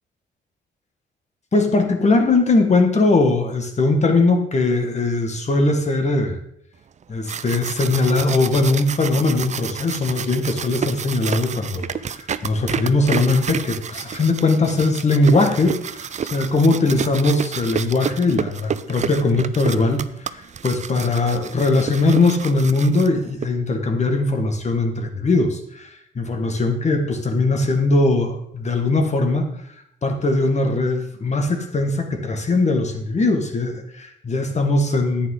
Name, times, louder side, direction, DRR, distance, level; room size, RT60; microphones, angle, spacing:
voice 1, 1.5-6.4 7.1-29.5 30.0-35.3, left 2 dB, 35° left, 4 dB, 1.8 m, -20 dB
sound 1, 7.0-23.5, right 7 dB, 35° right, 0.5 m, -30 dB
10.5 x 8.9 x 3.9 m, 0.75 s
cardioid pair, 90°, 20 cm